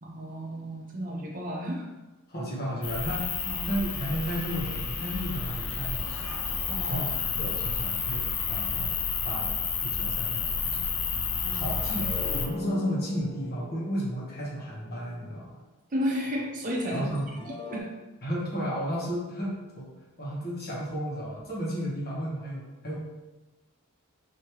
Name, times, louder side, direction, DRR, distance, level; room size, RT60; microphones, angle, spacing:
voice 1, 0.0-1.9 3.4-3.7 6.7-7.1 11.4-11.7 15.9-17.9, equal, 40° right, -1 dB, 0.7 m, -33 dB
voice 2, 2.3-3.3 3.7-6.3 6.9-7.0 7.3-8.9 9.2-10.9 11.5-15.6 16.9-17.2 18.2-19.9 20.2-23.0, equal, 45° left, -6 dB, 1.4 m, -33 dB
sound 1, 2.8-12.5, left 5 dB, 75° left, 0.6 m, -30 dB
sound 2, 11.4-15.7 16.7-17.8, left 3 dB, 20° left, 0.4 m, -42 dB
5.1 x 2.8 x 3.0 m, 1.1 s
head